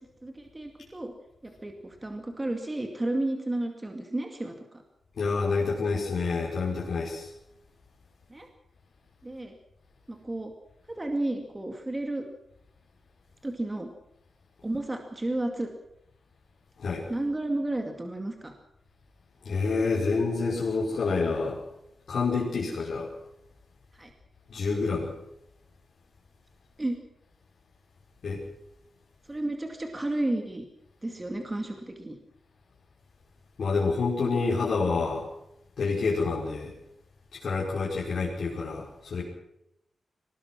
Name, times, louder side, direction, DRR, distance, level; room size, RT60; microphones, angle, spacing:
voice 1, 0.2-1.1 1.4-4.8 8.3-8.5 9.2-9.5 10.1-10.5 10.9-12.2 13.4-13.9 14.6-15.7 17.1-18.5 23.9-24.1 26.8-27.0 29.3-30.6 31.0-32.2, right 1 dB, 20° right, 4 dB, 2.3 m, -32 dB
voice 2, 5.2-7.3 16.8-17.1 19.4-21.6 22.1-23.1 24.5-25.1 28.2-28.4 33.6-35.3 35.8-36.7 37.3-39.2, left 4 dB, 65° left, -6 dB, 5.6 m, -28 dB
23.0 x 20.0 x 6.2 m, 0.82 s
wide cardioid pair, 120°, 0 cm